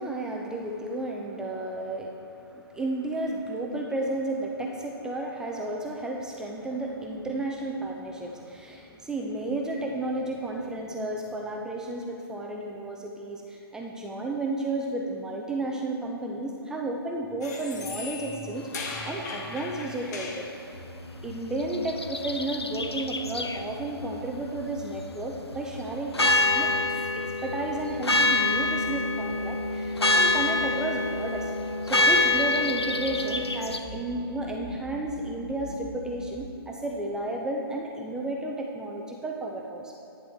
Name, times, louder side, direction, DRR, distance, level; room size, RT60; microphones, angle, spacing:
voice 1, 0.0-20.5 21.2-26.1 26.5-26.7 27.4-31.5 31.8-39.9, right 2 dB, 5° right, 0 dB, 0.5 m, -32 dB
sound 1, 17.4-20.5, left 4 dB, 40° left, 1.3 m, -38 dB
sound 2, 20.7-36.3, right 1 dB, 25° left, 2.2 m, -43 dB
sound 3, 21.6-23.6 26.1-33.8, left 2 dB, 85° left, 0.7 m, -26 dB
10.5 x 9.4 x 3.5 m, 3.0 s
figure-of-eight pair, 130°, 13 cm